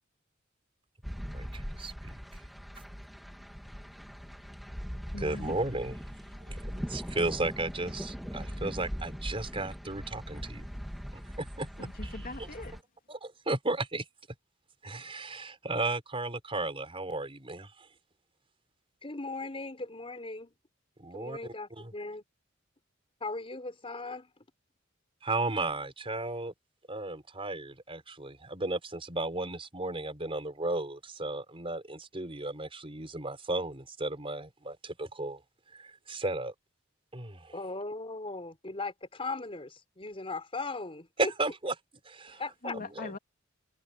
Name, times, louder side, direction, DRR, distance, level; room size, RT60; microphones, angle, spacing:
sound 1, 1.0-12.8, equal, ahead, 3.1 m, -40 dB
voice 1, 1.2-2.2 5.2-6.0 6.4-10.6 11.4-12.1 13.1-14.0 14.8-17.9 21.0-21.9 25.2-26.5 26.9-35.4 35.7-36.5 37.1-37.5 41.2-41.7 42.0-42.4 42.7-43.1, right 2 dB, 30° right, 4.7 m, -34 dB
voice 2, 5.1-5.6 11.8-12.8 42.3-43.2, left 2 dB, 45° left, 3.0 m, -42 dB
voice 3, 19.0-20.5 21.1-22.2 23.2-24.4 37.5-41.3 42.4-42.7, left 3 dB, 30° left, 4.2 m, -38 dB
head